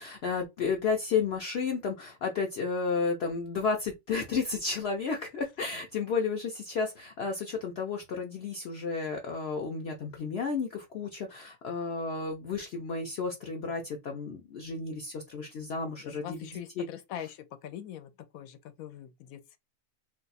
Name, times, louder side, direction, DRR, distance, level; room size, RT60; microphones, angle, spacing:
voice 1, 0.0-16.4 16.8-16.9, left 5 dB, 60° left, 0.7 m, -32 dB
voice 2, 16.0-19.6, left 10 dB, 85° left, 1.0 m, -43 dB
2.6 x 2.3 x 3.9 m
omnidirectional pair, 1.4 m